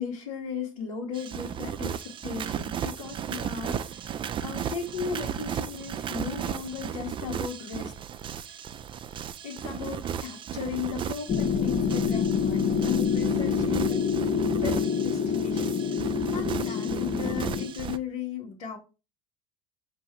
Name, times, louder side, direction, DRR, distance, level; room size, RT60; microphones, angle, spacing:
voice 1, 0.0-7.9 8.4-8.6 9.4-14.2 14.6-18.8, left 7 dB, 85° left, -4 dB, 1.2 m, -36 dB
sound 1, 1.1-18.0, right 8 dB, 30° right, 0.4 m, -35 dB
sound 2, 11.3-17.7, left 6 dB, 35° left, 0.6 m, -26 dB
4.7 x 2.7 x 4.3 m, 0.31 s
hypercardioid pair, 85°, 18 cm